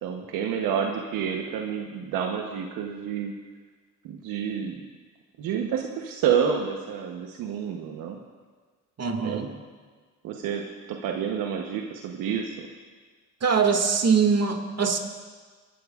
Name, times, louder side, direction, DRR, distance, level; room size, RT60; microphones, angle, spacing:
voice 1, 0.0-3.3 4.0-4.8 5.4-8.2 9.2-9.5 10.2-12.7, right 7 dB, 85° right, 2 dB, 1.0 m, -29 dB
voice 2, 9.0-9.5 13.4-15.0, right 5 dB, 50° right, 4 dB, 2.0 m, -22 dB
24.5 x 12.5 x 2.4 m, 1.5 s
supercardioid pair, 65°, 33 cm